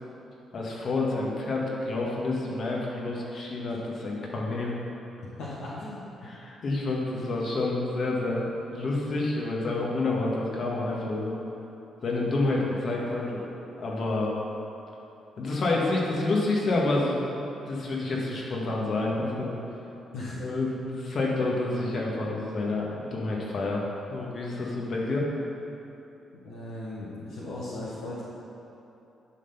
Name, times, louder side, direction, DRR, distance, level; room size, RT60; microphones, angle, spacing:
voice 1, 0.5-4.8 6.2-11.4 12.0-13.4 13.8-14.3 15.4-17.2 17.6-19.6 20.4-25.3, left 2 dB, 55° left, -3 dB, 1.6 m, -28 dB
voice 2, 5.4-6.0 20.1-20.4 26.4-28.2, left 2 dB, 75° left, -7 dB, 1.3 m, -37 dB
11.0 x 4.0 x 5.6 m, 3.0 s
hypercardioid pair, 50°, 0 cm